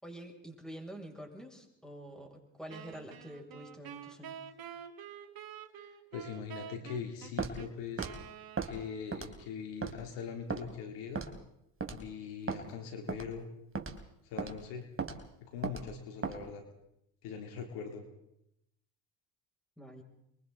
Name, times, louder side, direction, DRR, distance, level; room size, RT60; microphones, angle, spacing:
voice 1, 0.0-4.4 19.8-20.0, right 1 dB, ahead, 1 dB, 7.4 m, -47 dB
Wind instrument woodwind instrument, 2.7-9.3, right 8 dB, 55° right, 2.6 m, -48 dB
voice 2, 5.8-8.1 8.6-11.3 11.9-13.5 14.3-14.9 15.5-16.6 17.2-18.0, left 6 dB, 75° left, 4 dB, 3.7 m, -42 dB
Walk footsteps, 7.4-7.6 8.0-8.1 8.6-8.7 9.1-9.4 9.8-10.0 10.5-10.6 11.2-11.4 11.8-12.0 12.5-12.6 13.1-13.3 13.7-14.0 14.4-14.5 15.0-15.2 15.6-15.8 16.2-16.4, right 5 dB, 30° right, 3.6 m, -36 dB
28.5 x 23.5 x 4.2 m, 0.79 s
hypercardioid pair, 65°, 43 cm